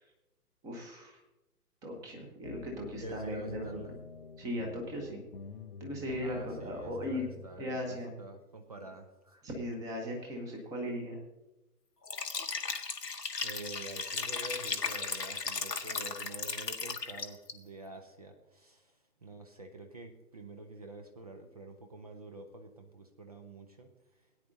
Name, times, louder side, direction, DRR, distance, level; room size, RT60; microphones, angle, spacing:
voice 1, 0.6-1.2 1.8-3.8 4.4-5.2 5.8-8.1 9.4-11.2, left 1 dB, 5° right, 1 dB, 0.9 m, -38 dB
sound 1, 2.4-7.6, left 4 dB, 35° left, 0.6 m, -48 dB
voice 2, 3.0-3.9 6.2-9.4 13.4-18.9 19.2-23.9, right 2 dB, 25° right, 6 dB, 0.6 m, -47 dB
Liquid, 12.0-17.5, left 4 dB, 85° left, 1.0 m, -36 dB
17.5 x 9.5 x 2.7 m, 0.98 s
figure-of-eight pair, 130°, 48 cm